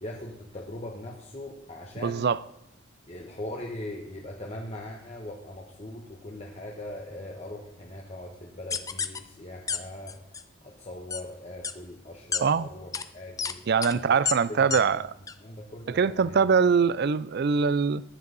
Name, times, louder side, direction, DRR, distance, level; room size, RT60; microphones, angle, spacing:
voice 1, 0.0-2.2 3.1-10.2 10.6-13.6 13.9-14.1 14.5-15.0 15.4-16.4, left 1 dB, 35° left, 1.3 m, -40 dB
voice 2, 2.0-2.4 12.4-12.7 13.7-15.1 15.9-18.0, right 6 dB, 55° right, 0.4 m, -23 dB
sound 1, 8.7-9.2 9.7-9.8 10.1-10.4 11.1-11.2 11.6-11.7 12.3-12.4 12.9-13.0 13.4-13.5 13.8-13.9 14.2-14.3 14.7-14.8 15.3-15.4, left 6 dB, 15° left, 0.5 m, -29 dB
15.0 x 10.5 x 4.1 m
head